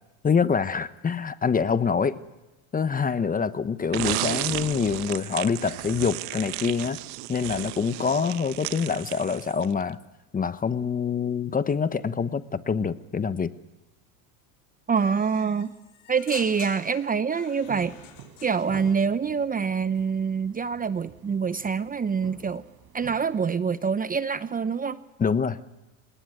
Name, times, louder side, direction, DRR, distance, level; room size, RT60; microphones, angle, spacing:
voice 1, 0.2-2.2 2.7-7.0 7.3-10.0 10.3-13.5 25.2-25.6, left 6 dB, 20° left, 14 dB, 1.0 m, -25 dB
sound 1, 3.9-9.8, right 19 dB, 65° right, 1.2 m, -33 dB
voice 2, 14.9-15.7 16.1-17.9 18.4-22.6 22.9-25.0, right 6 dB, 20° right, 14 dB, 0.8 m, -26 dB
sound 2, 15.0-19.0, left 9 dB, 80° left, 4.9 m, -47 dB
sound 3, 17.6-23.5, right 8 dB, 45° right, 3.9 m, -48 dB
26.5 x 18.5 x 9.7 m, 1.0 s
supercardioid pair, 105°, 44 cm